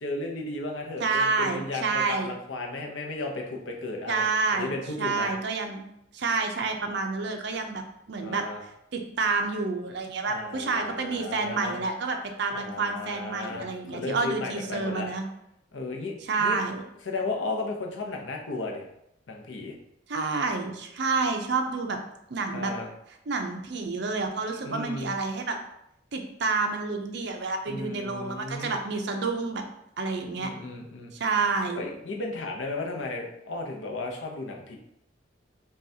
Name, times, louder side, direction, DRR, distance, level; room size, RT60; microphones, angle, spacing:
voice 1, 0.0-4.2 4.5-5.3 8.2-8.6 10.3-11.8 12.5-15.1 15.7-16.1 16.4-16.6 17.1-18.8 19.3-19.7 22.5-22.9 24.6-25.1 27.7-28.8 30.4-31.1 31.7-34.8, left 2 dB, 85° left, 1 dB, 0.7 m, -34 dB
voice 2, 1.0-2.3 4.1-5.8 6.1-8.4 8.9-15.2 16.2-16.8 20.1-22.0 22.3-22.7 23.3-25.6 26.1-29.6 30.0-30.5 31.1-31.8, right 4 dB, 60° right, 4 dB, 0.5 m, -29 dB
5.4 x 2.4 x 2.7 m, 0.79 s
head